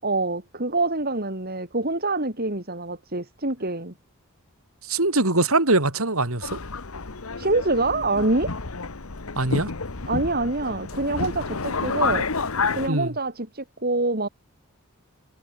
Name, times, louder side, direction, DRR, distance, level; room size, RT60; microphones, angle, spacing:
voice 1, 0.0-3.9 7.4-8.5 10.1-12.3 12.7-14.3, right 2 dB, 45° right, 5.0 m, -25 dB
voice 2, 4.9-6.6 9.4-9.7 12.9-13.1, right 2 dB, 70° right, 4.2 m, -22 dB
Subway metro underground, 6.4-12.9, left 4 dB, 70° left, 1.4 m, -29 dB
head